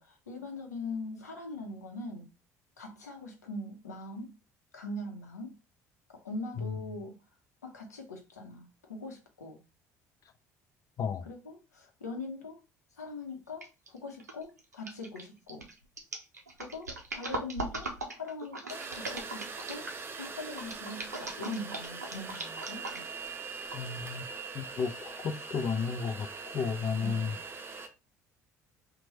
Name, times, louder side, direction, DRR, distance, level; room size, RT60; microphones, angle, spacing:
voice 1, 0.0-2.3 2.8-4.4 4.7-5.6 6.1-7.2 7.6-9.6 11.3-12.6 13.0-15.7 16.6-17.9 18.1-19.9 20.2-22.9 27.0-27.4, left 2 dB, 85° left, 0.7 m, -42 dB
voice 2, 11.0-11.3 23.7-24.2 24.5-26.3 26.5-27.4, left 5 dB, 40° left, 0.5 m, -33 dB
sound 1, 13.6-13.9 14.2-20.0 20.6-23.2 23.7-23.8, right 2 dB, 90° right, 0.5 m, -39 dB
sound 2, 18.7-27.9, right 4 dB, 25° right, 0.7 m, -42 dB
3.0 x 2.2 x 4.1 m
figure-of-eight pair, 60°, 9 cm